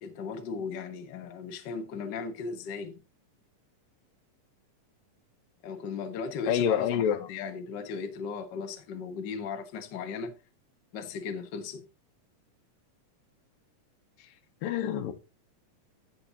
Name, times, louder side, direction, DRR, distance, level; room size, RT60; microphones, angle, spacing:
voice 1, 0.0-3.0 5.6-10.4 10.9-11.9, left 5 dB, 55° left, 1.2 m, -37 dB
voice 2, 6.5-7.2 14.6-15.2, left 9 dB, 85° left, 2.7 m, -27 dB
16.5 x 5.7 x 2.8 m
omnidirectional pair, 3.9 m